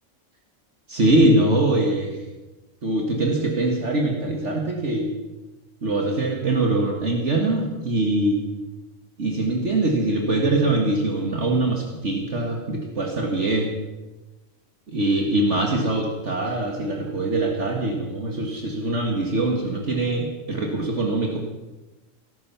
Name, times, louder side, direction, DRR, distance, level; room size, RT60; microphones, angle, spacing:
voice 1, 0.9-2.2 2.8-5.1 5.8-8.4 9.2-13.7 14.9-21.4, right 2 dB, 55° right, 1 dB, 2.1 m, -23 dB
18.0 x 14.0 x 5.7 m, 1.1 s
omnidirectional pair, 1.4 m